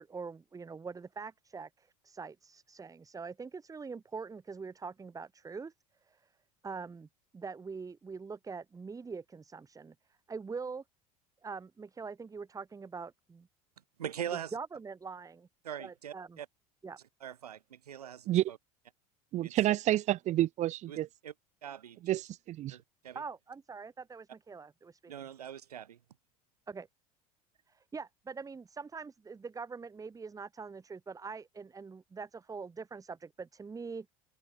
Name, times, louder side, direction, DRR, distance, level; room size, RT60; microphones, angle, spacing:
voice 1, 0.0-5.7 6.1-6.2 6.6-7.1 7.3-9.9 10.3-10.8 11.4-13.5 14.5-15.5 15.8-16.4 16.8-17.0 23.1-25.1 26.7-26.9 27.7-34.1, right 5 dB, 20° right, 1.1 m, -43 dB
voice 2, 14.0-14.5 15.6-16.5 17.2-18.6 19.4-19.8 20.9-21.0 21.2-21.3 21.6-22.2 22.7-23.2 25.1-26.0, right 9 dB, 85° right, 1.1 m, -42 dB
voice 3, 19.3-21.1 22.0-22.8, right 14 dB, 40° right, 0.5 m, -29 dB
hypercardioid pair, 80°, 19 cm